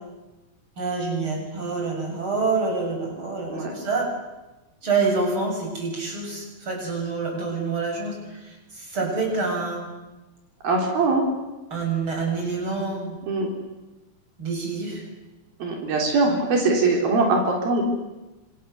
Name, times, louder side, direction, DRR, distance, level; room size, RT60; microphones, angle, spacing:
voice 1, 0.8-4.1 4.8-9.9 11.7-13.2 14.4-15.0 16.3-16.4, right 4 dB, 35° right, 0 dB, 8.1 m, -27 dB
voice 2, 10.6-11.2 13.3-13.5 15.6-17.8, right 3 dB, 80° right, 1 dB, 5.3 m, -22 dB
29.5 x 26.5 x 7.0 m, 1.1 s
omnidirectional pair, 4.2 m